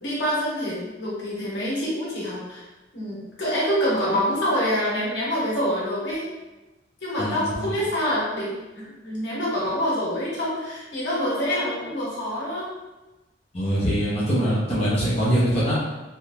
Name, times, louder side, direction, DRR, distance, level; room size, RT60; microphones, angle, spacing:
voice 1, 0.0-2.6 2.9-6.3 7.0-12.7, equal, 80° left, -8 dB, 1.4 m, -26 dB
voice 2, 7.2-7.7 13.5-15.8, equal, 35° left, -8 dB, 0.8 m, -23 dB
3.4 x 2.3 x 2.8 m, 1.1 s
head